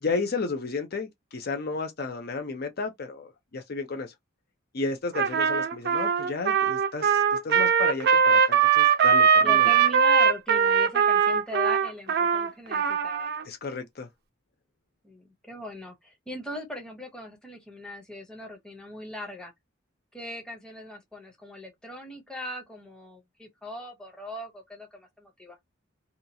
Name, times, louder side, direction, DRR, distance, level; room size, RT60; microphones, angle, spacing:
voice 1, 0.0-4.1 4.7-9.7 13.4-14.1, left 4 dB, 50° left, 0.5 m, -33 dB
Trumpet, 5.1-13.4, right 7 dB, 50° right, 0.4 m, -21 dB
voice 2, 9.4-13.3 15.0-19.5 20.1-25.6, left 1 dB, 5° left, 0.8 m, -40 dB
2.8 x 2.4 x 2.6 m
head